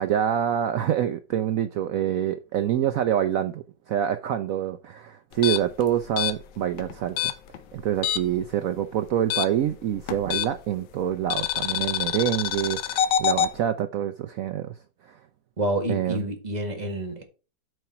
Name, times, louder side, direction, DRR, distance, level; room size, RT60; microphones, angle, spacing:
voice 1, 0.0-7.3 7.7-14.7 15.0-15.2 15.9-16.2, right 10 dB, 85° right, 0.7 m, -26 dB
sound 1, 5.3-8.5 8.7-10.8 11.3-13.5, left 9 dB, 70° left, 1.4 m, -27 dB
voice 2, 15.6-17.2, right 1 dB, 20° right, 1.8 m, -28 dB
7.9 x 4.4 x 5.6 m
omnidirectional pair, 2.1 m